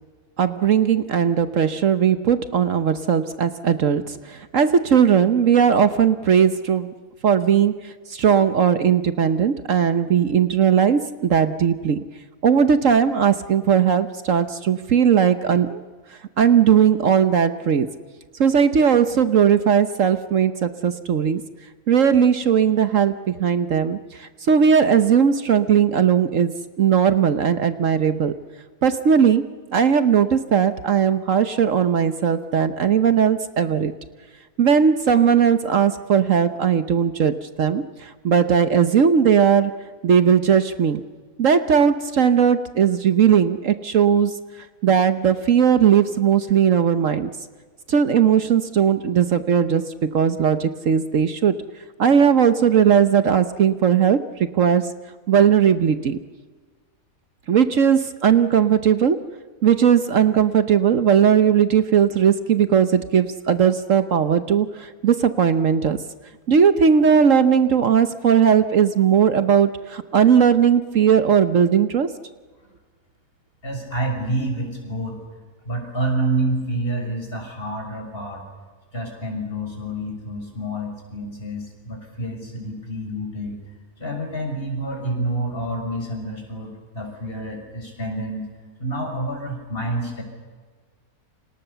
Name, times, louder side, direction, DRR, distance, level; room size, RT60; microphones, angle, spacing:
voice 1, 0.4-6.9 7.2-12.0 12.4-15.8 16.4-17.9 18.4-21.4 21.9-26.5 26.8-28.3 28.8-29.5 29.7-33.9 34.6-39.7 40.0-41.0 41.4-44.3 44.8-47.3 47.9-49.8 50.1-51.6 52.0-54.9 55.3-56.2 57.5-59.2 59.6-66.0 66.5-72.1, right 7 dB, 60° right, 10 dB, 1.3 m, -18 dB
voice 2, 73.6-75.2 75.6-78.5 78.9-83.6 84.0-88.5 88.8-90.2, right 1 dB, 40° left, 3 dB, 6.7 m, -28 dB
30.0 x 26.5 x 6.9 m, 1.4 s
omnidirectional pair, 1.5 m